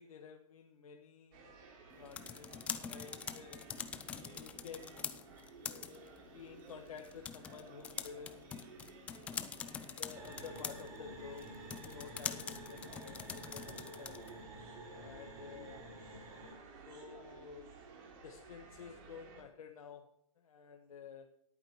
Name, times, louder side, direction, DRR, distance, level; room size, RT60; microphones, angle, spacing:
voice 1, 0.0-1.5 2.0-3.6 4.3-5.3 5.6-8.5 9.6-11.5 11.7-14.3 15.0-15.8 16.9-17.8 18.2-20.0 20.4-21.3, left 6 dB, 85° left, 4 dB, 1.4 m, -52 dB
sound 1, 1.3-19.4, right 4 dB, 40° right, 3.2 m, -56 dB
sound 2, 1.9-14.4, left 7 dB, 5° left, 0.3 m, -45 dB
sound 3, 10.1-16.5, right 1 dB, 20° right, 4.7 m, -51 dB
19.0 x 8.8 x 3.0 m, 0.75 s
hypercardioid pair, 160°, 18 cm